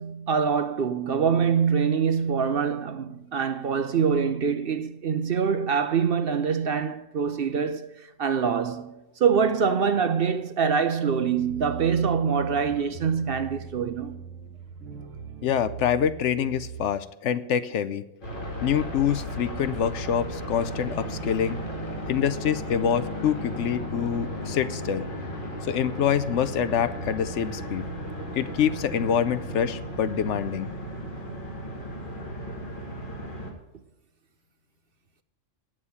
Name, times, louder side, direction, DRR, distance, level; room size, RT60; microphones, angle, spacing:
voice 1, 0.0-14.2, right 6 dB, 55° right, 0.8 m, -25 dB
sound 1, 11.3-16.9, right 7 dB, 70° right, 1.5 m, -41 dB
voice 2, 15.4-18.0 18.6-21.6 22.1-25.0 25.7-27.8 28.3-30.7, left 8 dB, 70° left, 0.9 m, -26 dB
sound 2, 18.2-33.5, equal, 40° left, 2.6 m, -35 dB
9.6 x 7.4 x 7.0 m
omnidirectional pair, 1.3 m